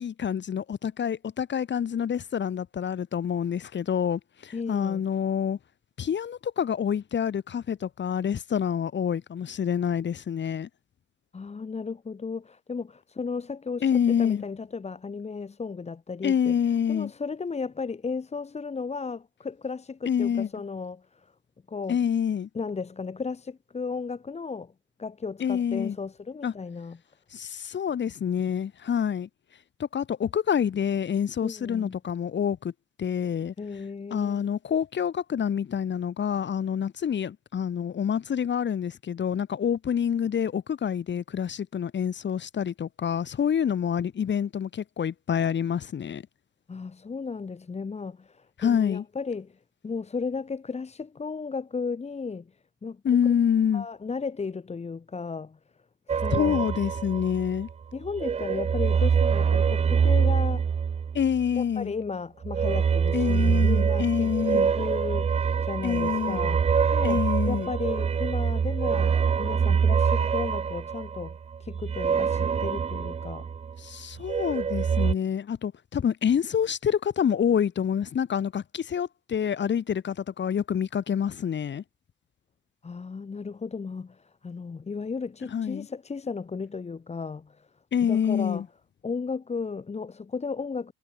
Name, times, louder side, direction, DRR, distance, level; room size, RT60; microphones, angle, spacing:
voice 1, 0.0-5.6 6.0-10.7 13.8-14.4 16.2-17.1 20.1-20.5 21.9-22.5 25.4-26.0 26.4-26.5 27.3-29.3 29.8-32.7 33.0-33.5 34.1-46.2 48.6-49.0 53.0-53.9 56.3-57.7 61.1-61.9 63.1-64.7 65.8-66.5 67.0-67.7 73.8-81.8 85.5-85.9 87.9-88.7, left 8 dB, 35° left, 3.9 m, -27 dB
voice 2, 4.5-5.0 11.3-21.3 21.7-22.0 22.5-24.7 25.0-27.0 31.4-32.0 33.6-34.5 46.7-52.5 52.8-53.0 53.7-55.6 56.1-56.6 57.9-60.6 61.5-65.3 65.6-66.7 66.9-73.5 82.8-87.7 88.0-88.7 89.0-90.9, left 5 dB, 20° left, 2.1 m, -35 dB
sound 1, 56.1-57.7 58.0-61.6 62.4-73.8 74.1-75.1, right 6 dB, 20° right, 0.6 m, -25 dB
supercardioid pair, 100°, 30 cm